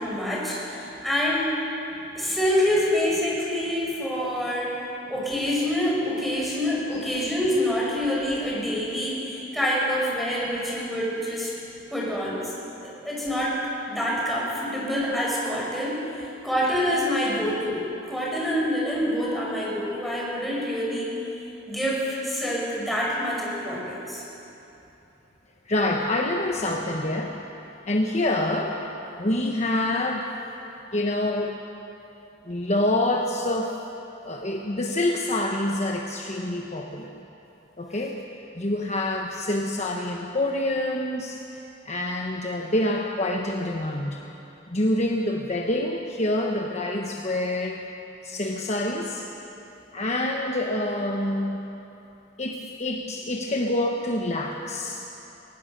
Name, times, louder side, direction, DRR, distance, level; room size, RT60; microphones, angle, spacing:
voice 1, 0.0-1.5 2.1-4.8 5.1-11.5 11.9-12.5 12.8-13.6 13.9-21.1 21.7-24.2, equal, ahead, -5 dB, 6.0 m, -26 dB
voice 2, 25.7-27.5 27.9-28.8 29.2-30.3 30.9-31.5 32.5-33.8 34.2-37.1 37.8-38.2 38.5-44.2 44.7-47.8 48.2-49.3 49.9-51.7 52.4-55.0, left 1 dB, 40° left, 1 dB, 1.2 m, -26 dB
22.5 x 19.5 x 6.8 m, 2.9 s
head